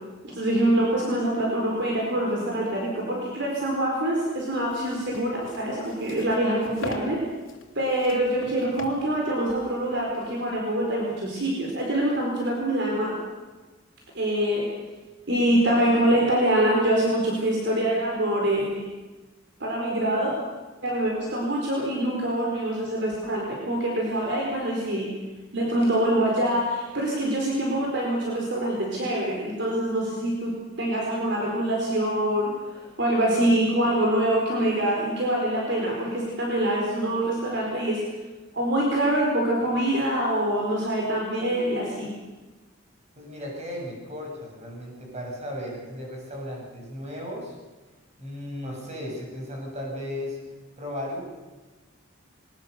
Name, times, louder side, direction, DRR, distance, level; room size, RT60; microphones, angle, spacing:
voice 1, 0.2-7.2 7.7-13.1 14.1-14.7 15.3-18.8 19.6-20.4 20.8-25.1 25.5-30.5 30.8-38.0 38.5-42.1, right 1 dB, 60° right, -2 dB, 4.6 m, -25 dB
sound 1, 4.5-10.6, left 2 dB, 75° left, 3.0 m, -42 dB
voice 2, 43.2-47.6 48.2-50.4 50.8-51.2, left 1 dB, 35° right, -2 dB, 7.4 m, -35 dB
22.0 x 20.0 x 6.8 m, 1.2 s
head